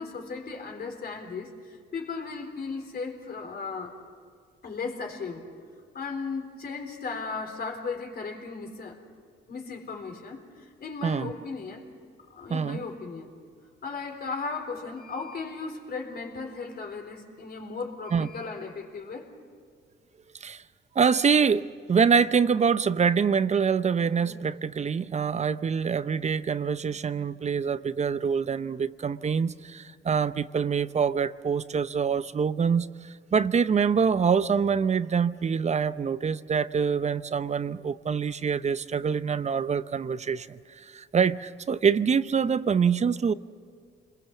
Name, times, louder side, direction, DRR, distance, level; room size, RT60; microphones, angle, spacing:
voice 1, 0.0-4.0 4.6-5.5 5.9-9.0 9.5-11.9 12.3-13.3 13.8-19.3, left 4 dB, 50° left, 3 dB, 3.9 m, -36 dB
voice 2, 12.5-12.8 18.1-18.3 20.4-20.6 21.0-43.3, right 6 dB, 35° right, 15 dB, 0.7 m, -25 dB
27.0 x 21.5 x 7.2 m, 2.1 s
cardioid pair, 90°, 20 cm